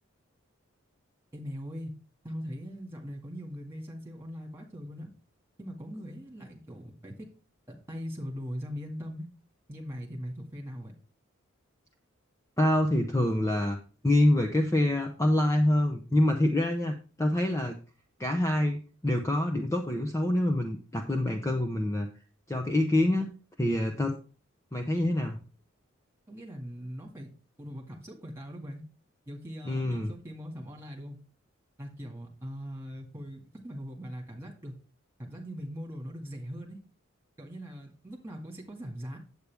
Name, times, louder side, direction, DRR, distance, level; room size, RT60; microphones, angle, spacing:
voice 1, 1.3-1.9 2.2-5.1 5.6-7.3 7.7-9.3 9.7-10.9 26.3-27.3 27.6-28.8 29.3-31.2 31.8-34.7 35.2-36.8 37.4-39.2, equal, 10° right, 0 dB, 2.0 m, -40 dB
voice 2, 12.6-13.8 14.0-17.8 18.2-22.1 22.5-23.3 23.6-24.2 24.7-25.4 29.7-30.1, left 1 dB, 15° left, 4 dB, 0.6 m, -26 dB
8.5 x 8.0 x 3.5 m, 0.36 s
head